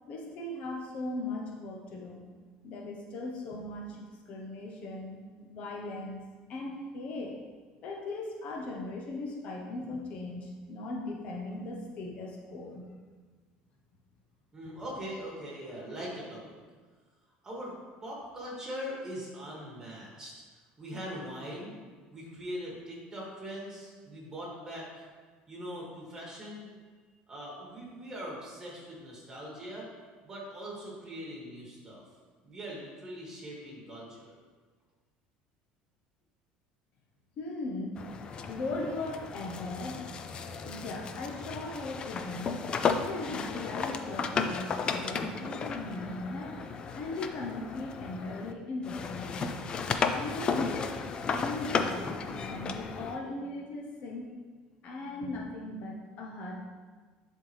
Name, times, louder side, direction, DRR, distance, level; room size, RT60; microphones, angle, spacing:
voice 1, 0.1-2.2 2.6-6.2 6.5-7.4 7.8-12.9 37.4-38.1 38.5-40.0 40.6-42.7 43.0-46.6 46.9-49.6 49.9-50.9 51.3-54.3 54.8-56.6, left 2 dB, 45° left, 0 dB, 0.9 m, -38 dB
voice 2, 14.5-16.6 17.4-17.7 18.0-20.4 20.8-21.8 22.1-25.1 25.5-26.7 27.3-29.9 30.2-32.0 32.4-34.4, equal, 20° right, -4 dB, 2.3 m, -41 dB
sound 1, 38.0-48.5 48.8-53.2, left 5 dB, 30° left, 0.4 m, -34 dB
11.0 x 4.3 x 3.4 m, 1.5 s
cardioid pair, 150°, 3 cm